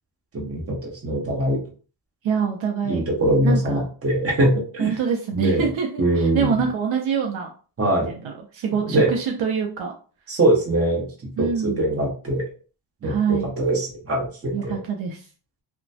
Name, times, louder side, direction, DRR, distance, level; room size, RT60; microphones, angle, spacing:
voice 1, 0.3-1.6 2.9-5.0 5.3-5.6 6.0-6.6 7.8-8.1 8.9-9.1 10.3-11.0 11.4-12.4 13.0-14.8, right 1 dB, 30° right, -1 dB, 1.0 m, -22 dB
voice 2, 2.2-3.0 3.4-3.8 4.8-7.5 7.8-9.9 11.4-11.8 13.0-13.5 14.5-15.2, right 6 dB, 70° right, 2 dB, 0.6 m, -25 dB
2.9 x 2.2 x 2.7 m, 0.38 s
cardioid pair, 130°, 49 cm